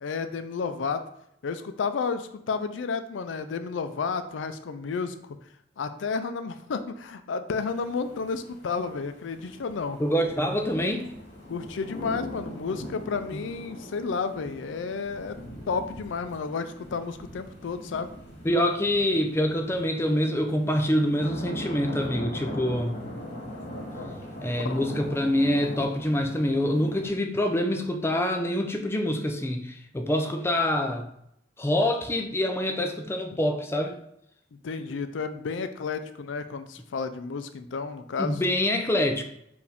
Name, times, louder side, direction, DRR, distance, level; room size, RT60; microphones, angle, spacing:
voice 1, 0.0-1.0 1.4-5.4 5.8-10.0 11.5-15.4 15.7-18.1 24.5-24.8 34.6-38.4, left 5 dB, 85° left, 10 dB, 0.4 m, -31 dB
sound 1, 7.5-27.1, left 1 dB, 65° left, 1.5 m, -41 dB
voice 2, 10.0-11.1 13.3-13.4 18.4-23.0 24.4-31.1 31.6-33.9 38.2-39.2, left 1 dB, 15° left, 4 dB, 0.4 m, -26 dB
4.8 x 2.6 x 3.4 m, 0.76 s
head